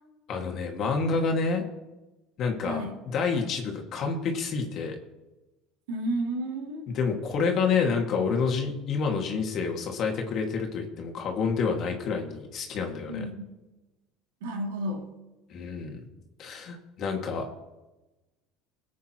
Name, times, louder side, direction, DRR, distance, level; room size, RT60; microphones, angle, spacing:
voice 1, 0.3-1.6 2.4-5.0 6.9-13.3 15.5-16.0 16.4-17.4, left 5 dB, 50° left, 2 dB, 2.0 m, -28 dB
voice 2, 2.6-2.9 5.9-6.9 13.1-13.5 14.4-15.1, right 1 dB, 85° right, 0 dB, 2.7 m, -32 dB
20.0 x 8.4 x 3.0 m, 1.1 s
supercardioid pair, 95°, 0 cm